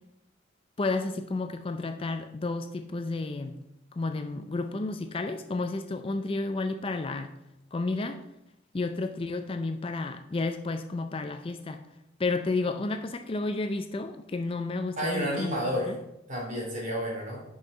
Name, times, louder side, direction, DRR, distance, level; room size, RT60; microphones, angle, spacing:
voice 1, 0.8-3.6 3.9-7.3 7.7-8.2 8.7-11.9 12.2-16.0, left 3 dB, 30° left, 7 dB, 0.4 m, -31 dB
voice 2, 15.0-15.9 16.3-17.4, equal, 40° right, -2 dB, 2.5 m, -30 dB
6.5 x 5.4 x 5.7 m, 0.86 s
head